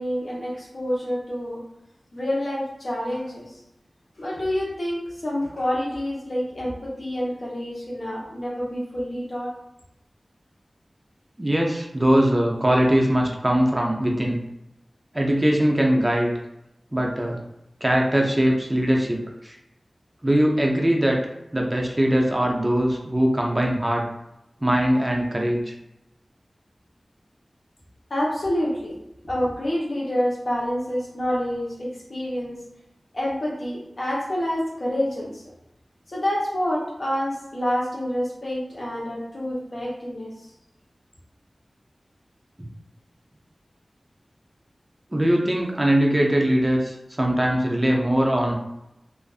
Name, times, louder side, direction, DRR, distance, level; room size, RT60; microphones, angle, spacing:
voice 1, 0.0-1.6 2.1-3.6 4.2-9.5 28.1-29.0 29.2-32.6 33.1-35.4 36.1-40.5, equal, 60° left, -4 dB, 0.8 m, -27 dB
voice 2, 11.4-14.4 15.1-16.3 16.9-17.4 17.8-19.6 20.2-21.2 21.5-24.0 24.6-25.7 42.6-42.7 45.1-48.5, right 1 dB, 20° right, 0 dB, 0.4 m, -21 dB
2.4 x 2.4 x 2.3 m, 0.87 s
wide cardioid pair, 75°, 0 cm